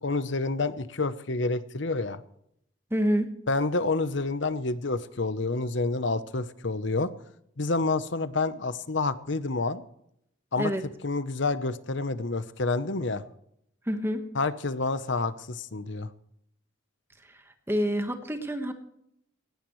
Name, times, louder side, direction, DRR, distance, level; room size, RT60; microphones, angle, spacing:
voice 1, 0.0-2.2 3.5-7.1 7.6-9.8 10.5-10.7 11.0-13.2 14.3-16.1, left 3 dB, 60° left, 13 dB, 0.9 m, -28 dB
voice 2, 2.9-3.3 10.6-10.8 13.9-14.2 17.7-18.7, equal, 10° right, 6 dB, 1.4 m, -27 dB
19.0 x 16.5 x 3.2 m, 0.74 s
head